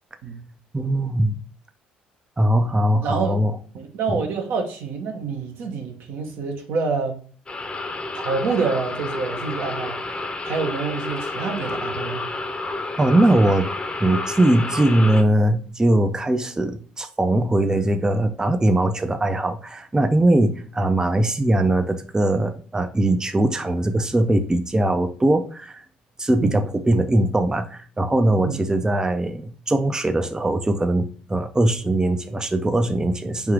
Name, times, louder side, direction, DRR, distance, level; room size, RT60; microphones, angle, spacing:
voice 1, 0.7-1.4 2.4-3.5 4.1-4.2 13.0-13.7 14.0-25.8 26.2-33.5, right 1 dB, 15° right, 7 dB, 0.5 m, -20 dB
voice 2, 3.0-3.3 3.7-7.2 8.1-10.0 10.4-12.2 26.4-26.6 28.4-28.6, right 4 dB, 65° right, 3 dB, 1.1 m, -27 dB
sound 1, 7.5-15.2, left 2 dB, 25° left, 0.8 m, -30 dB
3.5 x 2.8 x 4.7 m, 0.42 s
hypercardioid pair, 55°, 4 cm